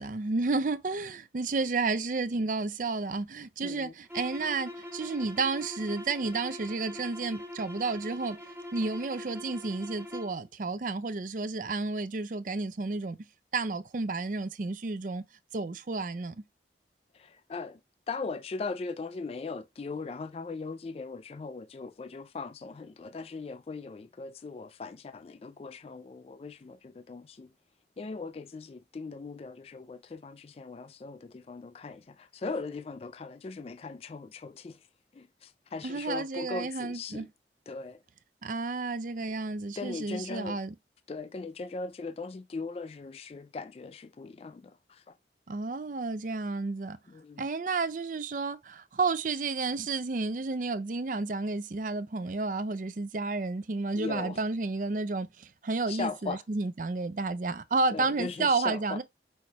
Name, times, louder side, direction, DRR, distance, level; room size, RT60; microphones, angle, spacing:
voice 1, 0.0-8.4 8.7-13.2 13.5-15.2 15.5-16.4 35.8-37.3 38.4-40.7 45.5-47.0 47.4-59.0, right 3 dB, 45° right, 0.5 m, -31 dB
voice 2, 3.6-3.9 17.1-17.8 18.1-27.5 28.0-34.8 35.1-37.3 37.7-38.0 39.8-40.6 41.1-45.1 47.1-47.5 53.9-54.4 55.9-56.4 57.9-59.0, left 4 dB, 35° left, 0.3 m, -39 dB
sound 1, 4.0-10.4, left 1 dB, 15° right, 0.8 m, -43 dB
5.6 x 3.2 x 2.9 m
head